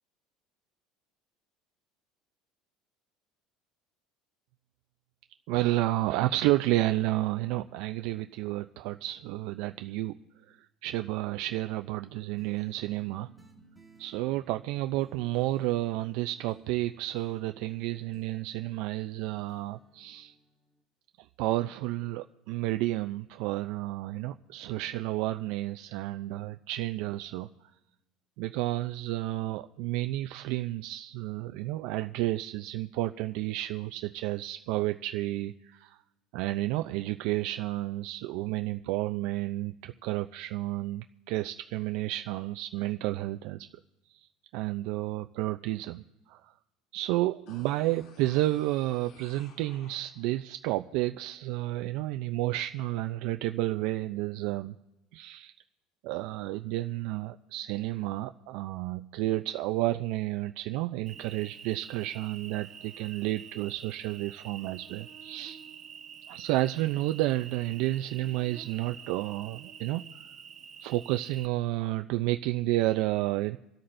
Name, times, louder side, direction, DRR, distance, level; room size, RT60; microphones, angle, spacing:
voice 1, 5.5-10.2 10.5-13.3 14.0-20.3 21.4-27.5 28.4-36.0 36.3-43.7 44.1-44.3 44.5-46.0 46.3-46.4 46.9-54.8 55.1-55.5 56.0-65.6 66.3-70.2 70.8-73.6, right 16 dB, 70° right, 8 dB, 0.4 m, -31 dB
sound 1, 12.4-20.8, right 5 dB, ahead, 1.7 m, -58 dB
sound 2, 47.5-50.4 50.8-50.9, left 5 dB, 60° left, 2.7 m, -56 dB
Cricket, 61.1-71.5, right 8 dB, 35° right, 0.9 m, -47 dB
27.5 x 13.0 x 2.6 m, 0.98 s
cardioid pair, 140°, 0 cm